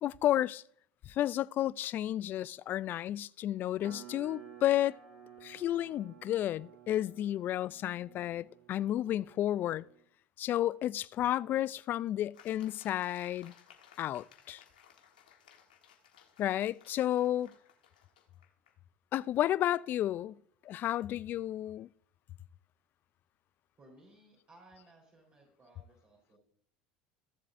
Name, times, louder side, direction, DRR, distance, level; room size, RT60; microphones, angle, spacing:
voice 1, 0.0-0.6 1.1-5.0 5.4-9.8 10.4-13.5 14.0-14.6 16.4-17.5 19.1-20.4 20.7-21.9, left 12 dB, 50° left, 0.3 m, -32 dB
sound 1, 3.8-10.0, right 10 dB, 75° right, 2.0 m, -54 dB
sound 2, 12.3-18.8, left 8 dB, 90° left, 1.4 m, -60 dB
voice 2, 23.8-26.4, right 1 dB, 35° right, 4.2 m, -60 dB
15.5 x 7.4 x 2.6 m
hypercardioid pair, 80°, 4 cm